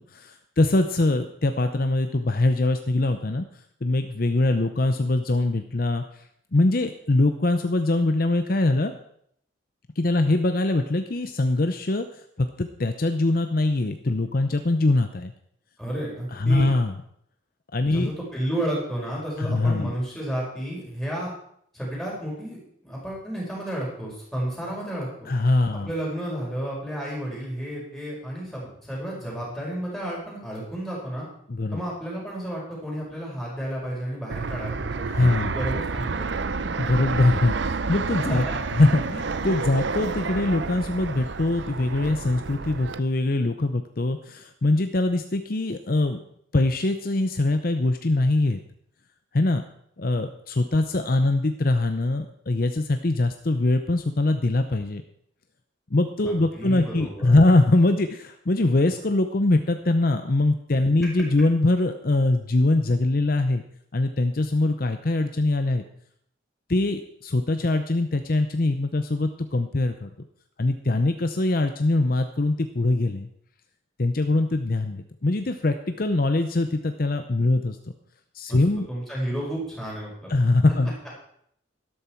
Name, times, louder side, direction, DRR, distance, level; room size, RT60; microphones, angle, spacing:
voice 1, 0.1-3.4 3.8-6.0 6.5-8.9 10.0-12.1 12.4-15.3 16.3-16.9 17.7-18.1 19.4-19.9 25.3-25.9 31.5-31.8 35.1-35.5 36.8-38.5 38.7-46.2 46.5-48.6 49.3-49.6 50.0-55.0 55.9-63.6 63.9-65.8 66.7-70.1 70.6-73.3 74.0-77.8 78.3-78.9 80.3-81.2, left 2 dB, 45° left, 8 dB, 0.7 m, -23 dB
voice 2, 15.8-16.7 17.9-21.3 21.7-25.3 25.9-31.2 31.7-36.5 38.2-38.6 56.2-57.3 78.5-78.6 78.9-80.3 80.7-80.8, right 1 dB, ahead, -5 dB, 5.0 m, -32 dB
Fixed-wing aircraft airplane, 34.3-43.0, right 4 dB, 65° right, 0.6 m, -30 dB
12.5 x 12.5 x 4.5 m, 0.68 s
head